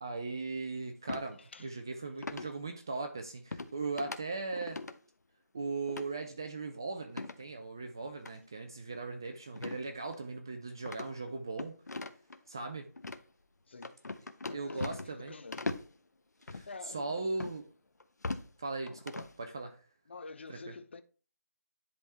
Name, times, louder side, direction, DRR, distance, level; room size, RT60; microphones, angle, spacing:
voice 1, 0.0-4.8 5.5-11.8 12.5-12.9 14.5-15.3 16.5-16.7 16.9-17.6 18.6-19.8 20.5-20.7, right 3 dB, 15° right, 0.3 m, -38 dB
sound 1, 1.1-1.3 2.2-2.5 3.5-3.7 4.0-4.2 4.5-4.9 5.9-6.1 7.1-7.4 8.2-8.3 9.6-9.8 10.1-10.2 10.8-12.4 13.0-13.2 13.8-15.2 15.5-15.9 16.4-16.7 17.4-17.6 18.0-18.5 18.9-19.3, left 3 dB, 75° left, 0.9 m, -39 dB
voice 2, 1.4-1.7 13.7-14.0 14.5-15.8 16.5-17.3 20.1-21.0, left 4 dB, 40° left, 0.8 m, -48 dB
10.5 x 3.6 x 4.2 m
figure-of-eight pair, 165°, 9 cm